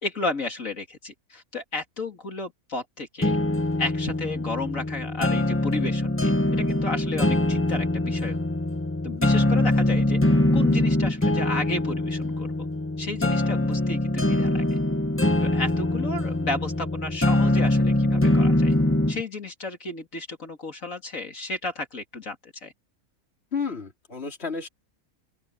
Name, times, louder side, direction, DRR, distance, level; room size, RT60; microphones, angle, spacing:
voice 1, 0.0-3.4 3.8-8.4 9.0-12.7 13.0-14.8 15.4-18.7 19.1-22.7, left 3 dB, 65° left, 3.0 m, -33 dB
sound 1, 3.2-19.2, left 1 dB, 10° left, 1.1 m, -23 dB
voice 2, 23.5-24.7, left 5 dB, 45° left, 3.4 m, -31 dB
open air
omnidirectional pair, 1.5 m